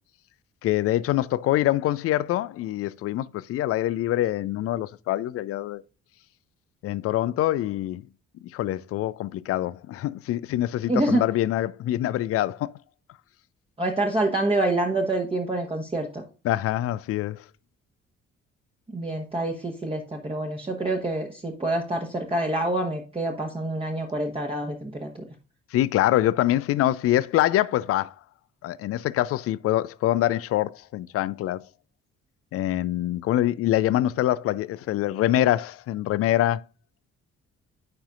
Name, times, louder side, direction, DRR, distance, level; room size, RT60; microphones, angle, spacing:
voice 1, 0.6-5.8 6.8-8.0 8.5-12.7 16.4-17.4 25.7-28.1 28.6-31.6 32.5-36.6, left 14 dB, 40° left, 0.4 m, -25 dB
voice 2, 10.9-11.2 13.8-16.2 18.9-25.2, right 2 dB, 15° right, 1.2 m, -27 dB
9.7 x 5.6 x 2.5 m
figure-of-eight pair, 40°, 38 cm